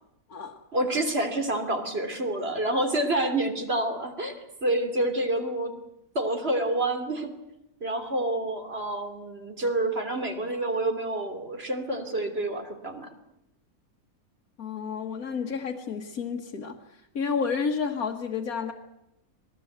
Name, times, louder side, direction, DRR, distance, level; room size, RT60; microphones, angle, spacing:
voice 1, 0.7-5.7 6.1-7.3 7.8-13.1, right 1 dB, 45° right, 6 dB, 3.4 m, -28 dB
voice 2, 14.6-18.7, left 5 dB, 75° left, 0 dB, 2.0 m, -31 dB
26.5 x 19.5 x 8.0 m, 0.84 s
omnidirectional pair, 1.5 m